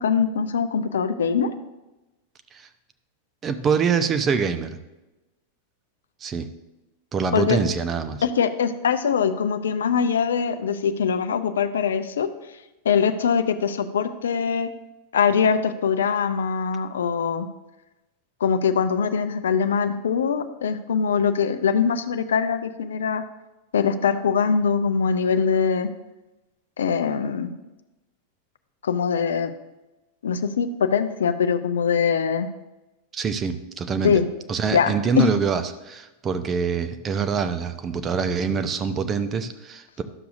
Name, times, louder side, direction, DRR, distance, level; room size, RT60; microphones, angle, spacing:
voice 1, 0.0-1.5 7.3-7.6 8.2-12.3 12.8-14.7 15.1-17.5 18.4-23.2 23.7-25.9 26.8-27.5 28.8-29.5 30.2-32.5 34.0-34.3 34.7-35.4, left 6 dB, 65° left, 10 dB, 0.5 m, -22 dB
voice 2, 3.4-4.8 6.2-6.5 7.1-8.2 33.1-34.2 34.5-40.0, right 6 dB, 25° right, 9 dB, 0.6 m, -25 dB
11.5 x 6.9 x 2.6 m, 1.0 s
figure-of-eight pair, 90°, 0 cm